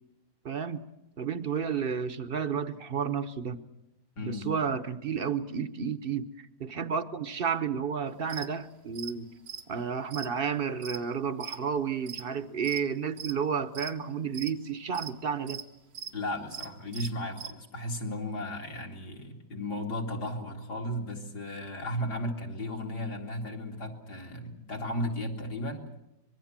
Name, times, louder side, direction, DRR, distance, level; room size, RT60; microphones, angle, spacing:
voice 1, 0.4-0.8 1.2-3.6 4.2-6.3 6.6-9.3 9.7-15.6, right 6 dB, 40° right, 12 dB, 0.9 m, -31 dB
voice 2, 4.2-4.5 16.1-25.9, left 1 dB, 70° left, 2 dB, 3.2 m, -35 dB
sound 1, 8.3-8.5 8.9-9.1 9.4-11.6 11.9-12.8 13.1-13.4 13.7-14.5 14.9-15.1 15.5-16.1 16.4-17.5, right 8 dB, 90° right, 2.0 m, -40 dB
25.0 x 21.5 x 7.5 m, 0.88 s
omnidirectional pair, 1.9 m